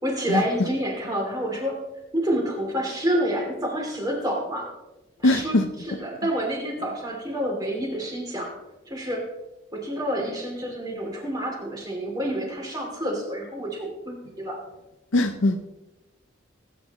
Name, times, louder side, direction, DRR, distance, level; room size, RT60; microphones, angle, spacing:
voice 1, 0.0-1.8 2.1-4.7 5.2-5.6 5.9-8.6 8.9-9.3 9.7-14.6, equal, 20° right, 0 dB, 2.6 m, -28 dB
voice 2, 5.2-5.7 15.1-15.7, left 2 dB, 80° left, 6 dB, 0.7 m, -21 dB
18.5 x 9.4 x 3.0 m, 1.0 s
head